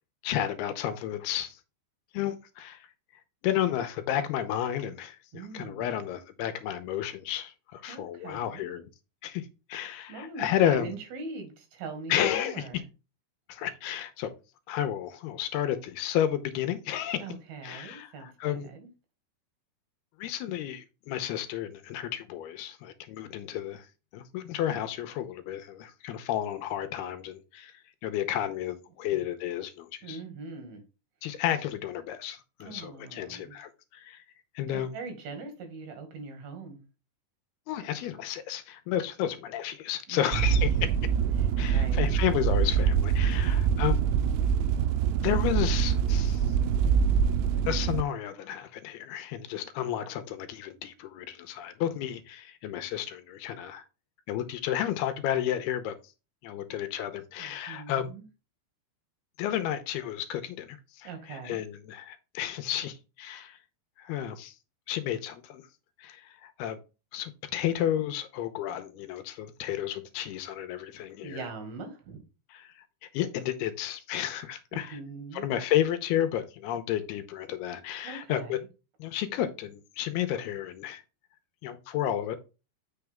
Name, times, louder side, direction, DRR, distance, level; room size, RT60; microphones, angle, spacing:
voice 1, 0.2-1.6 2.1-2.9 3.4-8.9 9.2-10.9 12.1-12.7 13.5-14.3 14.7-17.3 17.6-18.7 20.2-23.9 24.1-27.7 28.0-30.2 31.2-34.2 34.6-34.9 37.7-41.0 41.6-44.0 45.2-46.4 47.7-53.8 54.3-56.0 56.4-58.1 59.4-63.6 64.0-64.5 64.9-65.6 66.0-66.8 67.1-71.5 72.5-72.7 73.0-75.0 75.3-78.6 79.0-81.0 81.6-82.4, left 11 dB, 80° left, 2.7 m, -32 dB
voice 2, 5.3-5.9 7.9-8.8 10.1-12.8 17.2-18.9 29.1-29.2 30.0-30.8 32.6-33.6 34.7-36.8 40.1-40.8 41.4-42.2 43.4-44.1 57.4-58.2 61.0-61.6 71.2-72.2 74.7-75.5 78.0-78.6, right 4 dB, 70° right, 3.7 m, -42 dB
sound 1, 40.3-48.0, right 7 dB, 90° right, 2.7 m, -25 dB
8.0 x 5.7 x 3.5 m
omnidirectional pair, 4.7 m